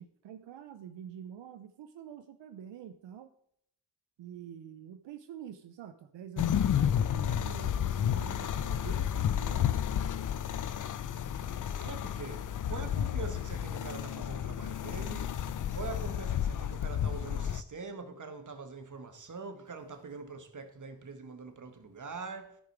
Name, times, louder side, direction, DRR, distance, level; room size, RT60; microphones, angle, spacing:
voice 1, 0.0-3.3 4.2-9.8, right 9 dB, 85° right, 0.6 m, -46 dB
sound 1, 6.4-17.6, left 9 dB, 50° left, 0.5 m, -31 dB
voice 2, 11.8-15.4 15.7-22.6, right 4 dB, 45° right, 1.6 m, -43 dB
13.0 x 5.1 x 4.7 m
cardioid pair, 60°, 42 cm